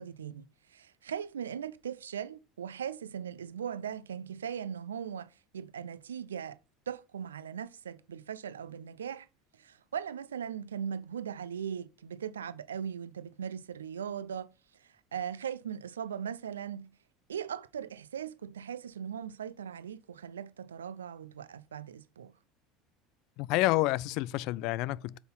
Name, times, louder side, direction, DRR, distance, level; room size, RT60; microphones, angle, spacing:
voice 1, 0.0-5.3 5.5-6.6 6.9-9.3 9.5-14.5 15.1-16.9 17.3-22.3, right 8 dB, 80° right, 0.6 m, -39 dB
voice 2, 23.4-25.2, left 18 dB, 60° left, 0.4 m, -29 dB
8.1 x 5.6 x 5.5 m
hypercardioid pair, 75°, 0 cm